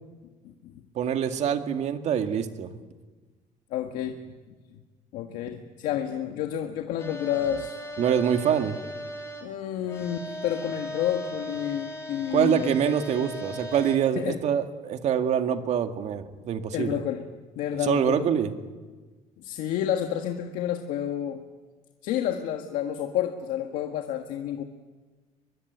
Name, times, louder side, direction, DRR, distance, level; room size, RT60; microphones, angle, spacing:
voice 1, 0.4-0.8 3.7-4.2 5.1-7.7 9.4-12.7 14.2-14.4 16.7-17.3 17.6-18.4 19.4-21.4 22.0-24.6, left 10 dB, 85° left, 5 dB, 1.7 m, -30 dB
voice 2, 1.0-2.8 8.0-8.8 12.3-17.0 17.8-18.5, right 8 dB, 55° right, 7 dB, 2.1 m, -25 dB
sound 1, 7.0-9.4 9.8-14.0, equal, 20° left, 7.2 m, -38 dB
23.5 x 22.5 x 9.3 m, 1.3 s
cardioid pair, 135°, 14 cm